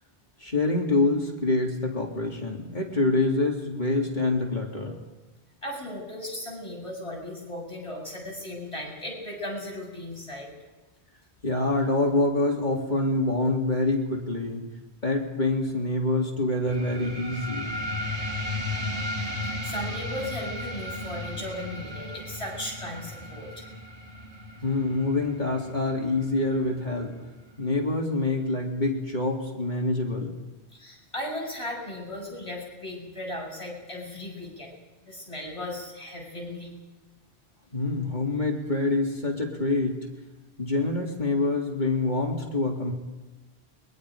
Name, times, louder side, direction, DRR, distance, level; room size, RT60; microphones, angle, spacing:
voice 1, 0.4-4.9 11.4-14.6 15.0-17.7 24.6-27.1 27.6-30.3 37.7-40.0 40.6-42.9, left 2 dB, 40° left, -1 dB, 3.7 m, -26 dB
voice 2, 5.6-10.5 19.4-23.7 30.7-34.7 35.0-36.7, left 1 dB, 25° left, -2 dB, 7.2 m, -36 dB
sound 1, 16.7-27.7, left 1 dB, 80° right, 3.5 m, -35 dB
30.0 x 23.0 x 5.2 m, 1.1 s
omnidirectional pair, 1.1 m